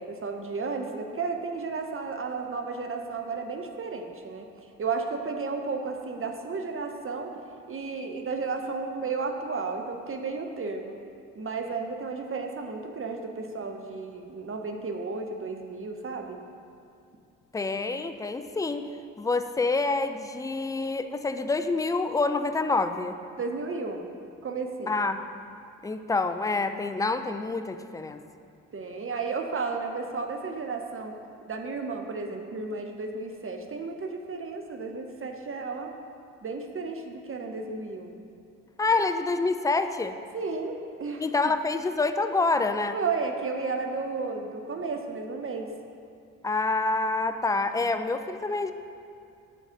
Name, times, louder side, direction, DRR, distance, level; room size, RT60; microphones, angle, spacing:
voice 1, 0.0-4.5 4.8-7.3 7.7-10.9 11.3-16.4 23.4-24.1 24.4-25.0 28.7-31.2 31.5-35.9 36.4-38.1 40.3-41.2 42.9-45.7, right 4 dB, 35° right, 4 dB, 0.8 m, -33 dB
voice 2, 17.5-18.9 19.2-23.2 24.9-25.2 25.8-28.2 38.8-40.2 41.2-43.0 46.4-48.7, left 3 dB, 10° left, 8 dB, 0.4 m, -27 dB
6.6 x 4.1 x 6.3 m, 2.4 s
hypercardioid pair, 45°, 37 cm